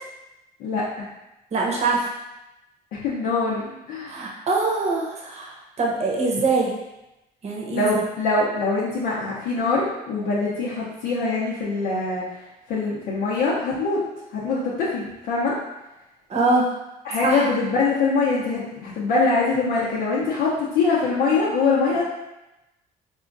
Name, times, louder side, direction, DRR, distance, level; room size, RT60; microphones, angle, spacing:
voice 1, 0.6-1.0 2.9-4.2 7.7-12.4 12.7-14.0 14.3-15.6 17.0-22.0, left 3 dB, 80° left, -8 dB, 0.7 m, -23 dB
voice 2, 1.5-2.1 4.1-5.5 5.8-6.7 7.4-7.9 16.3-16.7 17.2-17.4, right 3 dB, 40° right, -2 dB, 0.8 m, -23 dB
4.3 x 2.3 x 2.5 m, 0.95 s
cardioid pair, 110°, 17 cm